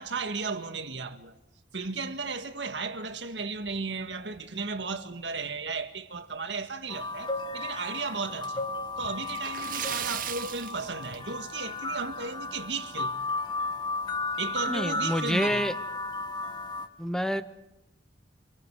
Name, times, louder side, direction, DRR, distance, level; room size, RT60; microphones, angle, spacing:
voice 1, 0.0-1.3 1.7-13.2 14.4-15.8, right 4 dB, 70° right, 1.8 m, -35 dB
sound 1, 6.9-16.9, left 3 dB, 25° left, 1.8 m, -34 dB
Splash splatter, 9.3-11.7 12.0-12.2 12.6-12.7 14.1-14.2 14.6-14.7 15.3-15.5, right 10 dB, 50° right, 0.7 m, -36 dB
voice 2, 14.7-15.7 17.0-17.4, equal, 5° left, 0.9 m, -28 dB
26.0 x 24.0 x 4.9 m
head